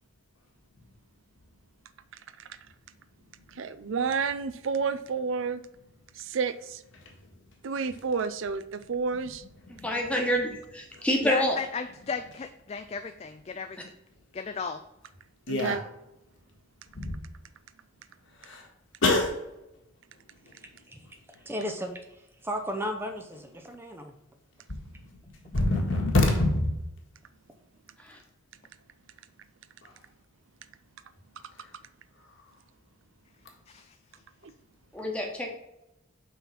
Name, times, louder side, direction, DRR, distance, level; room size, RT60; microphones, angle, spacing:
voice 1, 3.5-5.6 6.1-6.8 7.6-9.4 15.5-15.8 34.4-34.5, right 5 dB, 70° right, 0.5 m, -30 dB
voice 2, 9.7-11.5 28.0-28.2 34.9-35.5, equal, 5° left, 1.2 m, -28 dB
voice 3, 11.2-13.8 14.3-14.8 33.7-34.0, left 5 dB, 30° left, 0.3 m, -35 dB
voice 4, 15.5-15.8 17.0-17.2 18.4-18.6 19.0-19.3 25.5-26.8, left 2 dB, 65° left, 1.8 m, -24 dB
voice 5, 21.4-24.1, equal, 10° right, 0.6 m, -35 dB
5.8 x 4.1 x 5.8 m
head